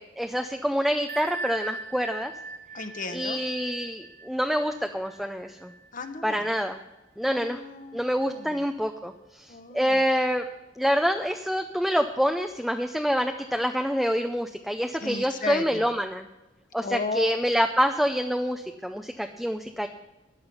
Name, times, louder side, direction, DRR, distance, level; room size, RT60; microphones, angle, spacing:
voice 1, 0.0-2.3 3.1-5.7 6.2-6.8 7.2-7.6 7.9-10.4 10.8-16.3 16.7-19.9, equal, ahead, 5 dB, 0.5 m, -26 dB
Bell, 1.1-6.5, right 3 dB, 45° right, 0.8 m, -39 dB
voice 2, 2.7-3.4 5.9-6.5 7.3-8.6 9.5-10.0 15.0-15.9 16.8-17.3, left 3 dB, 45° left, 8 dB, 1.2 m, -34 dB
14.0 x 9.5 x 5.5 m, 1.0 s
head